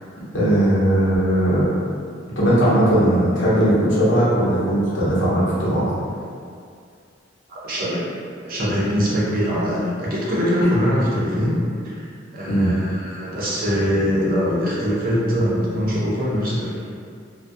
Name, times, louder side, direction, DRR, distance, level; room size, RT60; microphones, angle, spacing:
voice 1, 0.3-1.7 2.4-5.8 12.5-12.7, right 1 dB, 90° left, -9 dB, 0.9 m, -18 dB
voice 2, 7.5-8.1 8.4-11.6 11.8-12.1 12.3-16.8, equal, 45° right, -6 dB, 0.6 m, -22 dB
2.3 x 2.1 x 2.6 m, 2.2 s
head